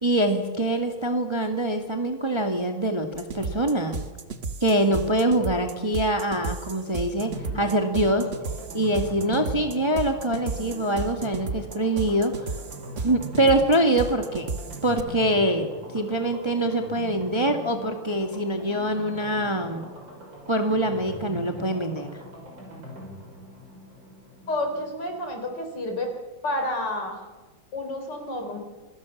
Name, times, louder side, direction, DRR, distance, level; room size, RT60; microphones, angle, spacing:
voice 1, 0.0-4.0 4.6-8.3 8.7-12.5 13.0-14.5 14.8-19.9 20.5-22.1, right 1 dB, 15° right, 5 dB, 1.6 m, -24 dB
sound 1, 3.1-15.0, right 4 dB, 35° right, 1.3 m, -34 dB
sound 2, 7.2-25.8 26.1-26.2 26.4-26.5, equal, 65° right, 8.1 m, -41 dB
voice 2, 24.5-26.1 26.4-27.2 27.7-28.6, left 1 dB, 55° left, 4 dB, 4.5 m, -29 dB
27.0 x 19.5 x 7.2 m, 1.3 s
omnidirectional pair, 2.2 m